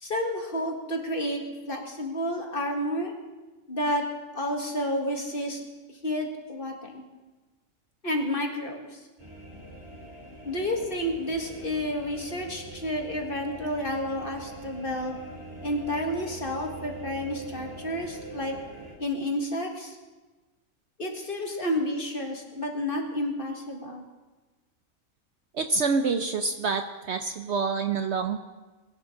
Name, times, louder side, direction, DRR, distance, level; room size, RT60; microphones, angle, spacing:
voice 1, 0.0-1.4 1.7-3.1 3.7-4.0 4.3-5.7 6.0-7.0 8.0-9.0 10.5-15.2 15.6-18.6 19.0-20.0 21.0-24.1, left 1 dB, 40° left, 1 dB, 1.9 m, -30 dB
sound 1, 9.2-18.9, right 1 dB, 25° right, 2.9 m, -43 dB
voice 2, 25.6-28.4, right 4 dB, 60° right, 7 dB, 0.8 m, -27 dB
21.0 x 11.5 x 3.8 m, 1.2 s
omnidirectional pair, 1.5 m